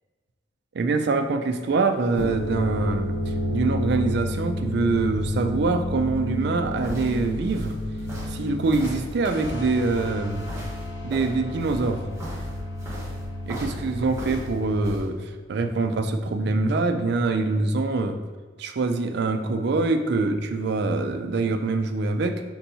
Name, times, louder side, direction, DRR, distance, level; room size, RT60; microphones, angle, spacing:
voice 1, 0.7-3.2 3.5-7.8 8.3-10.5 11.0-12.0 13.5-15.2 15.5-18.2 18.6-22.4, right 3 dB, 60° right, 7 dB, 0.4 m, -24 dB
sound 1, 2.0-15.0, left 1 dB, 85° left, 0.6 m, -31 dB
sound 2, 6.4-15.0, equal, 15° right, 1.0 m, -38 dB
4.4 x 4.1 x 2.7 m, 1.5 s
head